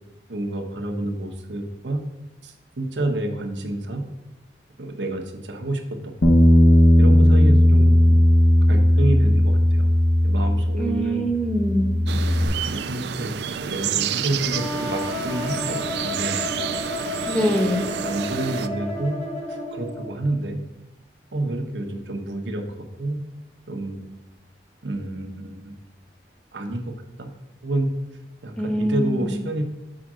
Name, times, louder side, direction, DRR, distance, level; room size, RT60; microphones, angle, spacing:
voice 1, 0.3-2.0 2.4-4.0 4.8-6.3 7.0-8.2 8.7-9.9 10.2-11.2 12.1-13.3 13.6-16.3 17.4-17.6 18.0-19.2 19.5-20.6 21.3-22.6 23.0-23.2 23.7-24.1 24.8-25.7 26.5-26.9 27.2-27.3 27.6-27.9 28.4-29.6, right 1 dB, 90° right, 3 dB, 1.0 m, -29 dB
Bass guitar, 6.2-11.0 11.3-12.5, left 1 dB, 65° left, 0.9 m, -16 dB
voice 2, 10.8-12.0 17.3-17.9 28.6-29.3, equal, 5° left, 3 dB, 0.8 m, -23 dB
sound 1, 12.1-18.7, right 9 dB, 70° right, 0.3 m, -29 dB
sound 2, 14.5-20.3, left 2 dB, 35° left, 1.6 m, -31 dB
5.2 x 5.0 x 6.1 m, 0.98 s
head